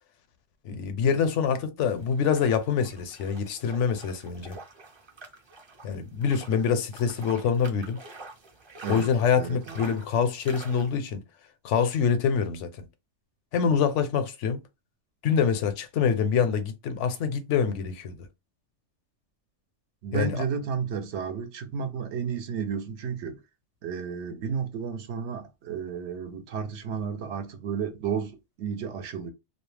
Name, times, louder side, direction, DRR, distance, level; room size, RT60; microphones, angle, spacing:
voice 1, 0.6-4.6 5.8-8.0 8.9-11.2 11.6-12.7 13.5-14.6 15.2-18.3 20.1-20.4, left 6 dB, 85° left, 0.9 m, -25 dB
sound 1, 1.8-11.0, right 3 dB, 30° right, 0.5 m, -46 dB
voice 2, 9.3-9.9 20.0-23.4 23.8-29.3, right 6 dB, 75° right, 0.9 m, -32 dB
2.3 x 2.1 x 3.1 m
omnidirectional pair, 1.2 m